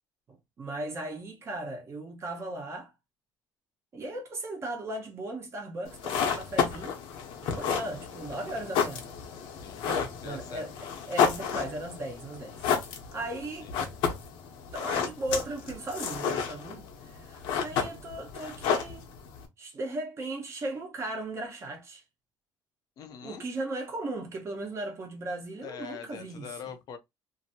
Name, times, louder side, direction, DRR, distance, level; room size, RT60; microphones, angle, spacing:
voice 1, 0.3-2.9 3.9-7.0 7.4-9.0 9.8-12.6 13.1-13.7 14.7-19.1 19.6-22.0 23.2-26.5, right 2 dB, 35° right, 1.1 m, -37 dB
sound 1, 5.9-19.5, left 7 dB, 85° left, 1.0 m, -31 dB
voice 2, 7.6-8.1 9.6-10.7 13.6-13.8 17.7-17.9 23.0-23.4 25.5-27.0, left 7 dB, 55° left, 0.6 m, -44 dB
2.8 x 2.7 x 2.7 m
cardioid pair, 140°, 8 cm